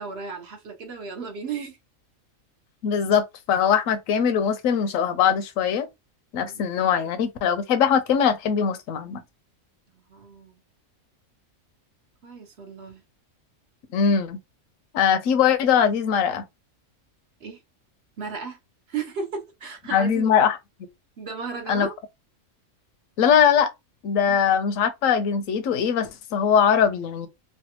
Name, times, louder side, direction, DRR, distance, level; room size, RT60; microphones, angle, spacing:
voice 1, 0.0-1.8 6.4-6.7 9.9-10.6 12.2-13.0 17.4-17.6 18.2-18.6 18.9-20.3 21.2-21.9 24.2-24.4, right 5 dB, 55° right, 0.9 m, -35 dB
voice 2, 2.8-5.9 6.3-9.2 13.9-14.4 14.9-16.4 19.9-20.6 21.7-21.9 23.2-23.7 24.0-27.3, left 7 dB, 75° left, 1.0 m, -21 dB
3.2 x 2.3 x 2.9 m
omnidirectional pair, 1.4 m